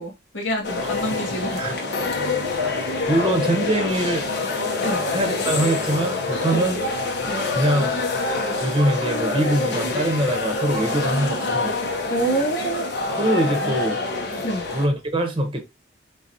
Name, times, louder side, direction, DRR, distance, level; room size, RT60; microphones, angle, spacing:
voice 1, 0.0-1.6 2.2-2.3 4.8-5.0 6.5-6.7 7.3-7.4 12.1-12.8 14.4-14.6, right 1 dB, 75° left, 1.8 m, -27 dB
sound 1, 0.6-14.9, left 3 dB, 55° left, 1.0 m, -26 dB
voice 2, 3.1-4.3 5.1-6.8 7.5-7.9 8.6-11.7 13.2-14.0 14.7-15.6, right 1 dB, 25° right, 0.9 m, -23 dB
4.0 x 4.0 x 2.8 m
head